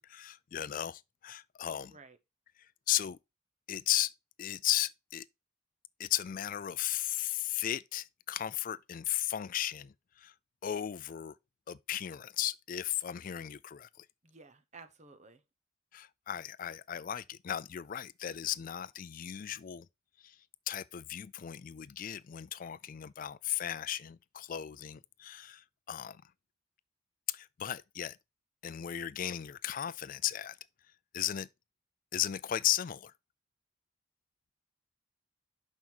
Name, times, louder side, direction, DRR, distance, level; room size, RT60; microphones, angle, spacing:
voice 1, 0.0-2.0 2.9-3.2 3.7-4.1 4.4-5.3 6.0-10.3 10.6-11.3 11.7-14.1 15.9-19.9 20.2-20.4 20.7-26.2 27.3-28.2 28.6-30.6 31.1-31.5 32.1-33.1, left 11 dB, 40° left, 0.3 m, -35 dB
voice 2, 1.9-2.2 14.2-15.4, right 4 dB, 35° right, 0.8 m, -54 dB
6.3 x 5.6 x 4.5 m
head